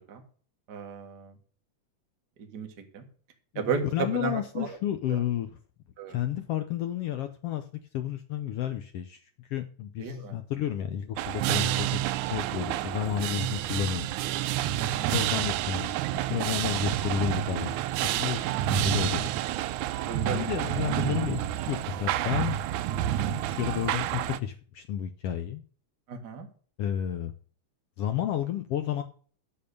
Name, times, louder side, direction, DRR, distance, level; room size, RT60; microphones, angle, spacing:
voice 1, 0.7-1.3 2.4-3.0 3.5-4.8 5.1-5.2 6.0-6.2 10.0-10.4 14.8-15.2 18.3-18.5 20.1-20.5 26.1-26.5, right 6 dB, 40° right, 3 dB, 1.6 m, -34 dB
voice 2, 3.9-5.5 6.1-7.7 7.9-12.0 12.3-14.1 14.8-17.7 18.2-19.3 20.3-22.6 23.3-25.6 26.8-27.3 28.0-29.0, left 10 dB, 80° left, 9 dB, 1.3 m, -31 dB
sound 1, 11.2-24.4, right 12 dB, 80° right, 2.0 m, -29 dB
11.0 x 6.9 x 6.6 m, 0.43 s
omnidirectional pair, 3.6 m